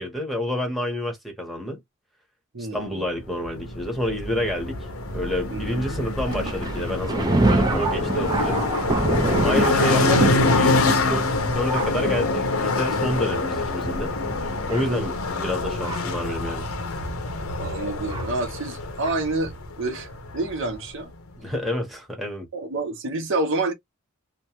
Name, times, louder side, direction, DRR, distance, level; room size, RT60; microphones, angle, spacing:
voice 1, 0.0-1.8 2.6-4.9 5.1-8.6 9.4-11.3 11.5-14.2 14.7-16.6 21.4-22.5, left 1 dB, ahead, 1.0 m, -28 dB
voice 2, 2.5-3.0 5.5-6.0 9.2-9.5 14.8-15.2 17.6-20.1 20.3-21.1 22.5-23.7, right 2 dB, 65° right, 0.8 m, -29 dB
sound 1, 3.4-20.8, left 3 dB, 85° left, 0.8 m, -26 dB
Thunder, 6.3-16.2 17.0-17.1 18.1-18.3 19.0-19.2, right 2 dB, 20° right, 0.5 m, -27 dB
3.0 x 2.1 x 2.9 m
head